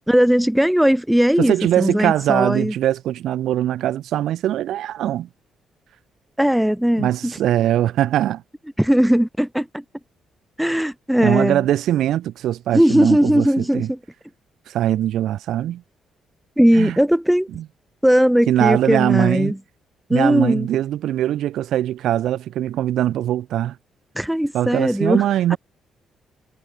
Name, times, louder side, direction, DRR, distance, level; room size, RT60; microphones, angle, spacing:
voice 1, 0.1-2.7 6.4-7.4 8.8-9.8 10.6-11.6 12.7-14.0 16.6-17.5 18.0-19.6 20.1-20.7 24.2-25.2 25.5-25.6, equal, 5° right, 0.8 m, -18 dB
voice 2, 1.4-5.3 7.0-8.4 11.2-13.9 14.7-15.8 16.7-17.0 17.5-17.6 18.5-19.5 20.1-23.8 24.5-25.6, right 12 dB, 75° right, 2.0 m, -21 dB
cardioid pair, 90°, 0 cm